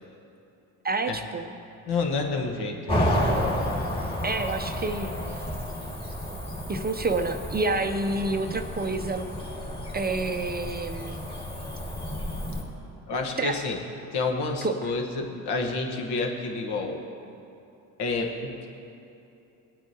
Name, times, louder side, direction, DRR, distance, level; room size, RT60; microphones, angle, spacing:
voice 1, 0.8-1.5 4.2-5.1 6.7-9.3 9.9-11.2 13.4-13.7 14.6-14.9, right 3 dB, 20° right, 6 dB, 0.5 m, -28 dB
voice 2, 1.9-3.2 13.1-13.8 14.1-17.0 18.0-18.6, left 3 dB, 60° left, 2 dB, 1.4 m, -29 dB
Cricket / Motor vehicle (road), 2.9-12.6, equal, 10° left, 1.9 m, -31 dB
18.0 x 8.8 x 2.8 m, 2.8 s
supercardioid pair, 75°, 45 cm